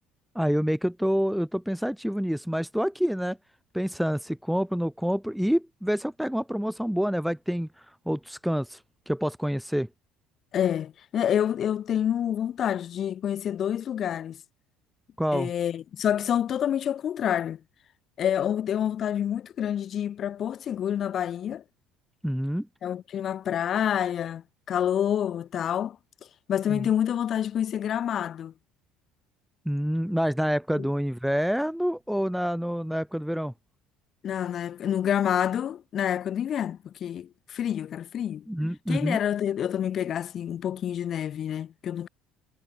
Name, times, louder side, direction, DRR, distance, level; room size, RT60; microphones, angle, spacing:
voice 1, 0.3-3.4 3.7-7.7 8.1-8.8 9.1-9.9 15.2-15.5 22.2-22.7 26.7-26.9 29.7-33.5 38.5-39.2, equal, ahead, 2.3 m, -27 dB
voice 2, 10.5-14.4 15.3-17.6 18.2-21.6 22.8-26.0 26.5-28.5 30.8-30.9 34.2-38.4 38.9-42.1, left 9 dB, 40° left, 4.3 m, -28 dB
figure-of-eight pair, 60°, 0 cm